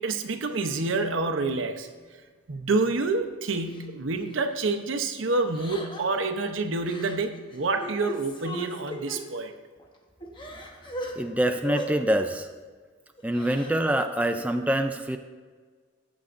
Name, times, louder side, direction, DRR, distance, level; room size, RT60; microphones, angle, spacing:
voice 1, 0.0-1.9 2.5-9.5, right 3 dB, 75° right, 6 dB, 0.8 m, -28 dB
Crying sobbing, 3.7-3.9 4.3-4.6 5.5-6.2 6.9-7.2 7.5-9.2 9.8-9.9 10.2-11.1 11.6-11.9 13.2-13.8, equal, 25° left, 1.0 m, -36 dB
voice 2, 11.2-12.5 13.2-15.2, right 1 dB, 5° right, 6 dB, 0.3 m, -25 dB
14.0 x 7.9 x 2.6 m, 1.5 s
head